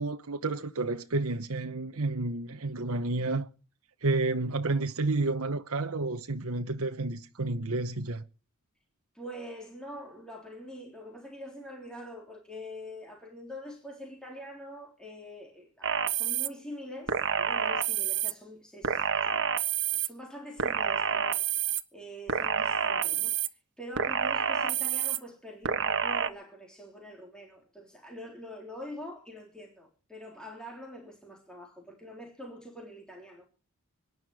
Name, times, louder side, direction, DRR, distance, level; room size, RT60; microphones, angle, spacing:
voice 1, 0.0-3.5 4.0-8.2, right 2 dB, 70° right, 1.1 m, -30 dB
voice 2, 9.1-33.5, equal, 5° left, 3.6 m, -45 dB
sound 1, 15.8-16.5 17.1-18.3 18.8-20.1 20.6-21.8 22.3-23.5 24.0-25.2 25.6-26.3, right 7 dB, 55° right, 1.4 m, -28 dB
25.0 x 11.0 x 4.8 m
head